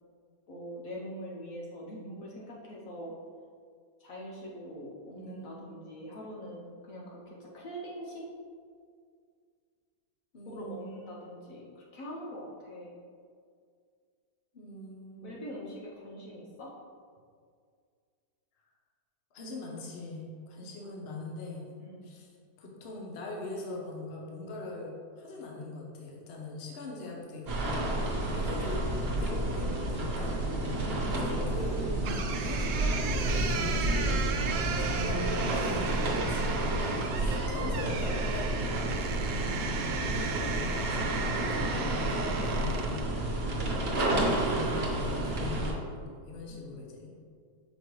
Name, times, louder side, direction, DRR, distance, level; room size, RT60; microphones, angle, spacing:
voice 1, 0.5-3.1 4.0-8.2 10.5-13.0 15.2-16.7 20.6-20.7 21.8-22.1 30.8-31.3 39.1-40.1 43.5-44.4 46.5-46.6, equal, 60° left, -3 dB, 1.2 m, -44 dB
voice 2, 5.1-5.7 10.3-11.1 14.5-15.4 19.3-21.7 22.0-22.3 22.6-30.5 31.1-31.9 32.2-34.3 34.8-38.9 39.5-41.1 41.4-43.0 44.0-47.1, left 2 dB, 45° left, -1 dB, 1.0 m, -41 dB
sound 1, 27.5-45.7, right 1 dB, 40° right, 1.1 m, -30 dB
sound 2, 32.0-43.1, right 5 dB, 70° right, 0.8 m, -35 dB
6.7 x 4.9 x 3.1 m, 2.1 s
omnidirectional pair, 1.7 m